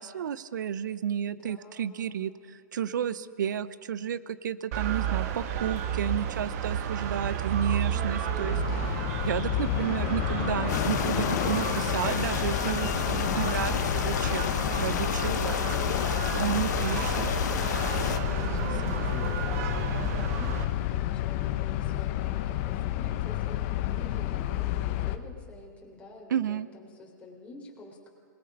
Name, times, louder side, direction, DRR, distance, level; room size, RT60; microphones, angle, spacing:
voice 1, 0.0-2.3 2.7-8.6 9.2-15.6 16.4-17.3 18.5-19.1 26.3-26.7, right 9 dB, 75° right, 17 dB, 0.8 m, -32 dB
voice 2, 1.2-2.2 2.9-3.4 7.8-8.7 10.6-10.9 12.4-13.1 15.3-16.0 16.9-28.1, left 1 dB, 10° left, -2 dB, 4.0 m, -47 dB
sound 1, 4.7-20.7, right 8 dB, 50° right, 1.5 m, -33 dB
sound 2, 8.4-25.2, left 14 dB, 45° left, 0.9 m, -30 dB
sound 3, 10.7-18.2, left 9 dB, 65° left, 1.3 m, -32 dB
26.5 x 20.0 x 5.3 m, 2.1 s
hypercardioid pair, 125°, 10 cm